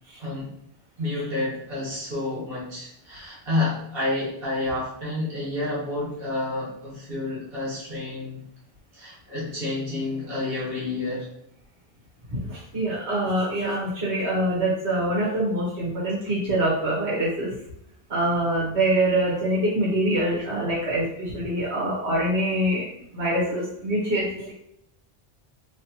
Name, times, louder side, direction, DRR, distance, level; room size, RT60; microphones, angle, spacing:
voice 1, 0.2-0.6 1.0-8.4 8.9-11.3, left 2 dB, 60° right, -7 dB, 1.6 m, -29 dB
voice 2, 12.3-17.5 18.1-22.8 23.1-24.5, right 1 dB, 85° right, -6 dB, 1.5 m, -25 dB
4.2 x 3.0 x 2.8 m, 0.74 s
omnidirectional pair, 1.1 m